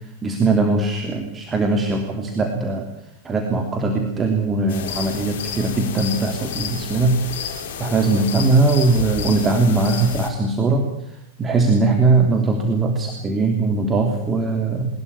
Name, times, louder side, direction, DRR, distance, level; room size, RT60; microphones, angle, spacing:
voice 1, 0.0-2.9 3.2-7.5 7.8-14.9, right 3 dB, 20° right, 4 dB, 3.2 m, -20 dB
sound 1, 4.7-10.3, left 7 dB, 55° left, 3.7 m, -31 dB
22.5 x 20.5 x 7.2 m, 0.82 s
figure-of-eight pair, 90°, 0 cm